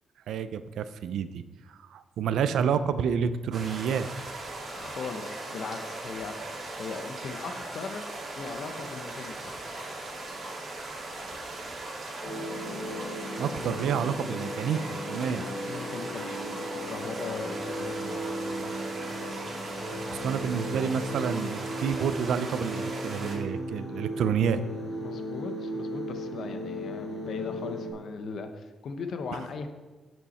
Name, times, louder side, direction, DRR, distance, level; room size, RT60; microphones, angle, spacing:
voice 1, 0.3-4.1 13.4-15.4 20.1-24.6, right 7 dB, 85° right, 12 dB, 0.5 m, -29 dB
sound 1, 3.5-23.4, right 2 dB, 50° right, 2.5 m, -39 dB
voice 2, 4.7-8.0 8.4-9.5 13.6-13.7 15.2-18.3 18.6-18.7 25.0-29.7, left 4 dB, 65° left, 7 dB, 0.9 m, -39 dB
sound 2, 12.2-27.9, equal, 50° left, 2.8 m, -36 dB
7.8 x 7.1 x 4.2 m, 1.2 s
cardioid pair, 105°, 0 cm